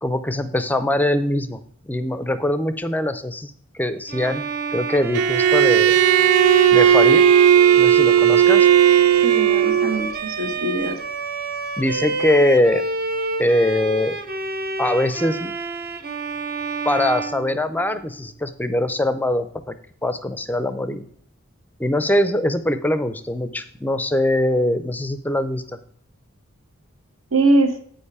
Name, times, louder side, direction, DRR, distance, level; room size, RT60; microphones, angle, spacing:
voice 1, 0.0-1.6 1.9-4.4 4.7-6.0 6.7-7.2 7.7-8.7 11.8-12.8 13.4-14.2 14.8-15.5 16.9-19.7 20.0-21.1 21.8-25.8, left 1 dB, 10° left, 11 dB, 0.5 m, -22 dB
Bowed string instrument, 4.1-18.2, right 2 dB, 45° right, 0.7 m, -28 dB
Bowed string instrument 2, 5.1-10.0, right 9 dB, 85° right, 0.4 m, -15 dB
voice 2, 9.2-11.0 27.3-27.8, right 2 dB, 70° right, 6 dB, 1.3 m, -21 dB
8.9 x 5.5 x 4.7 m, 0.63 s
head